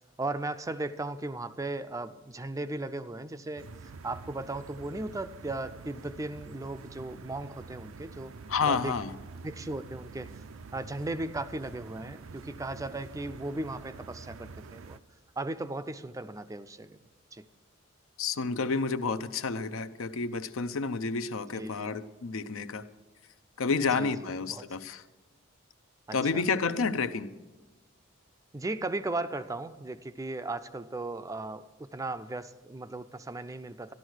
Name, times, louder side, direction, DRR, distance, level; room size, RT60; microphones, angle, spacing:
voice 1, 0.2-3.7 4.0-8.3 8.6-8.9 9.4-10.3 10.7-15.0 15.4-17.0 17.3-17.5 21.5-21.9 24.0-24.1 24.5-24.7 26.1-26.4 28.5-33.9, right 2 dB, 15° right, 12 dB, 0.4 m, -36 dB
sound 1, 3.6-15.0, right 4 dB, 75° right, 0.5 m, -47 dB
voice 2, 8.5-9.1 18.2-22.9 23.6-25.0 26.1-27.3, left 4 dB, 75° left, 11 dB, 0.6 m, -30 dB
13.0 x 11.5 x 6.3 m, 1.1 s
head